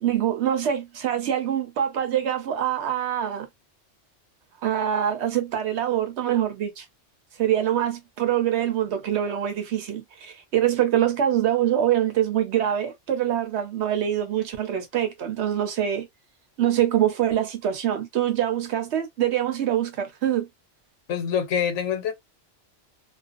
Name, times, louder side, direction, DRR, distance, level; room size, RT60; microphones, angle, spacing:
voice 1, 0.0-3.5 4.6-6.9 7.4-16.1 16.6-20.5, right 10 dB, 70° right, 0.9 m, -24 dB
voice 2, 21.1-22.1, left 8 dB, 75° left, 1.1 m, -25 dB
2.4 x 2.2 x 2.4 m
omnidirectional pair, 1.2 m